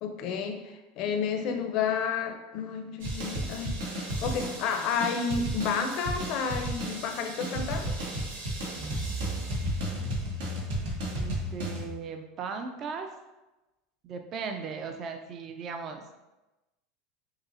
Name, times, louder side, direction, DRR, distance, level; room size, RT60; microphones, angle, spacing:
voice 1, 0.0-8.0, left 6 dB, 55° left, 5 dB, 0.4 m, -31 dB
sound 1, 3.0-11.9, right 1 dB, 85° right, 0.9 m, -33 dB
voice 2, 11.1-13.1 14.0-16.0, right 5 dB, 40° right, 5 dB, 0.4 m, -37 dB
5.2 x 2.0 x 2.5 m, 1.0 s
supercardioid pair, 125°, 0 cm